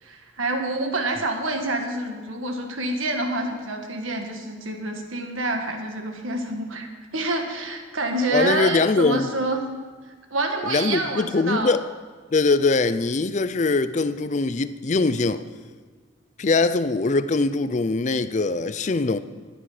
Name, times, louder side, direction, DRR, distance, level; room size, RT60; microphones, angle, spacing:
voice 1, 0.0-6.9 7.1-9.6 10.3-11.7, right 2 dB, 85° right, 1.7 m, -27 dB
voice 2, 8.3-9.3 10.6-11.8 12.3-15.4 16.4-19.2, left 3 dB, 35° left, 0.4 m, -22 dB
15.0 x 9.9 x 4.9 m
head